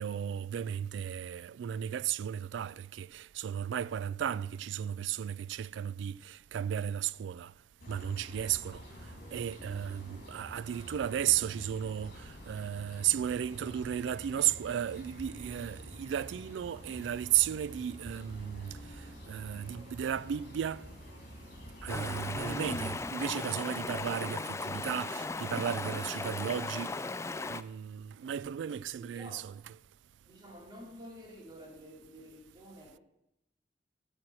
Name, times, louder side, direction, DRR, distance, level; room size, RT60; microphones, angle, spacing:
voice 1, 0.0-7.5 7.9-8.8 9.3-18.8 19.3-20.9 21.8-27.0 27.5-29.5, right 10 dB, 85° right, 0.3 m, -34 dB
sound 1, 7.8-23.0, equal, 60° left, 3.0 m, -48 dB
Stream, 21.9-27.6, left 3 dB, 15° left, 0.3 m, -37 dB
voice 2, 28.7-29.4 30.2-33.0, equal, 25° right, 2.5 m, -50 dB
12.5 x 4.4 x 7.6 m
head